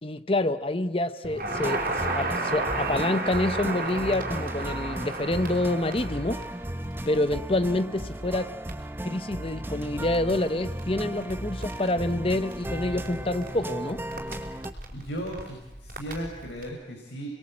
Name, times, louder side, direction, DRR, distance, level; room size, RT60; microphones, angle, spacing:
voice 1, 0.0-6.4 7.1-8.5 9.0-14.0, left 1 dB, 30° left, 12 dB, 0.9 m, -27 dB
Crackle, 1.2-16.7, right 2 dB, 45° right, 5.4 m, -35 dB
sound 1, 1.5-14.7, right 1 dB, 10° right, 0.8 m, -36 dB
voice 2, 14.9-17.3, right 1 dB, 80° left, 0 dB, 5.5 m, -36 dB
29.5 x 22.0 x 8.7 m, 1.0 s
head